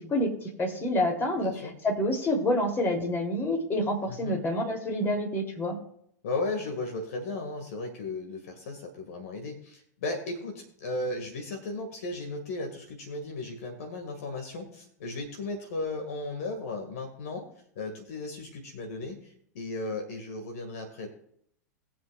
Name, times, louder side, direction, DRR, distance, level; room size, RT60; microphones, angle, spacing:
voice 1, 0.1-1.5 1.8-5.8, left 1 dB, 25° left, 0 dB, 3.1 m, -27 dB
voice 2, 1.3-1.8 4.1-4.4 6.2-17.5 17.8-21.1, left 2 dB, 60° left, 4 dB, 2.0 m, -35 dB
21.0 x 7.5 x 2.5 m, 0.69 s
figure-of-eight pair, 90°, 9 cm